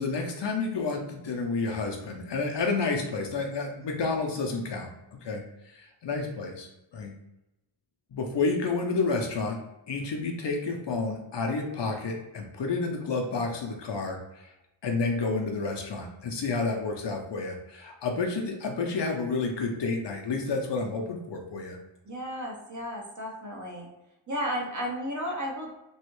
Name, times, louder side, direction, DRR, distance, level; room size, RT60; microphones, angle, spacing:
voice 1, 0.0-4.9 5.2-5.4 5.7-6.7 6.9-7.1 8.1-9.6 9.9-14.4 14.8-21.8, left 3 dB, 55° left, 2 dB, 0.8 m, -30 dB
voice 2, 22.0-23.9 24.3-25.7, equal, 35° right, -2 dB, 1.2 m, -33 dB
3.1 x 2.7 x 3.1 m, 0.93 s
cardioid pair, 55°, 49 cm